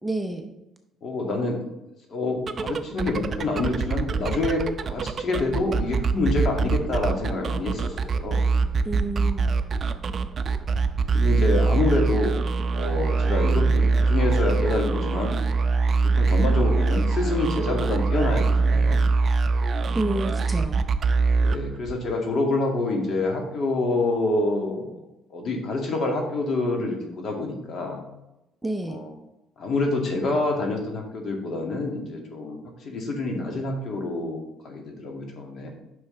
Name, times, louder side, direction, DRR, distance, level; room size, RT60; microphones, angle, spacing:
voice 1, 0.0-0.5 8.8-9.5 19.9-20.9 28.6-29.0, right 2 dB, 10° right, 5 dB, 0.8 m, -29 dB
voice 2, 1.0-1.6 2.1-8.4 11.1-12.3 12.7-15.4 16.0-19.0 21.4-24.9 25.3-28.0 28.9-29.1 29.6-32.6 32.8-35.7, left 2 dB, 50° left, 1 dB, 2.1 m, -27 dB
sound 1, 2.4-22.1, right 4 dB, 40° right, 0.5 m, -23 dB
9.2 x 6.2 x 3.3 m, 0.92 s
cardioid pair, 100°, 0 cm